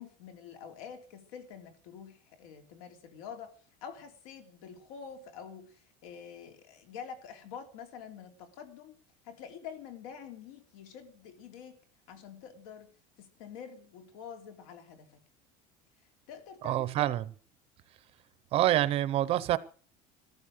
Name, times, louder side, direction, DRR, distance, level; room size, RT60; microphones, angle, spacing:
voice 1, 0.0-3.5 3.8-9.0 9.2-11.8 12.1-12.9 13.2-15.2 16.3-17.2, left 7 dB, 80° left, 3.5 m, -47 dB
voice 2, 16.6-17.3 18.5-19.6, right 13 dB, 35° right, 0.7 m, -27 dB
14.5 x 13.0 x 6.6 m
cardioid pair, 175°, 17 cm